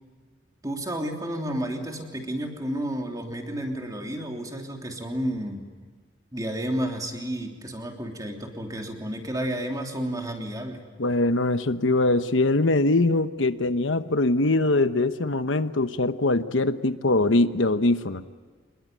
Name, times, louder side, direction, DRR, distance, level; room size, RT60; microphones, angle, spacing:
voice 1, 0.6-5.7 6.3-10.8, right 1 dB, 20° right, 2 dB, 3.1 m, -31 dB
voice 2, 11.0-18.2, left 2 dB, 85° left, 11 dB, 1.1 m, -22 dB
27.0 x 21.0 x 9.2 m, 1.5 s
head